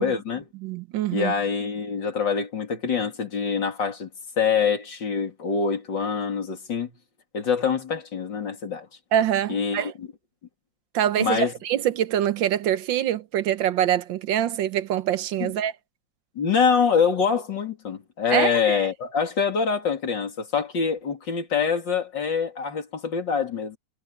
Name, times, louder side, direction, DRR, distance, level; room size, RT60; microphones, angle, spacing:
voice 1, 0.0-0.5 1.1-4.1 4.4-6.9 7.3-8.9 9.5-10.1 11.2-11.5 15.4-15.5 16.3-23.8, left 6 dB, 70° left, 3.5 m, -25 dB
voice 2, 0.6-1.3 9.1-9.9 10.9-15.7 18.3-18.8, right 11 dB, 85° right, 1.6 m, -24 dB
omnidirectional pair, 2.0 m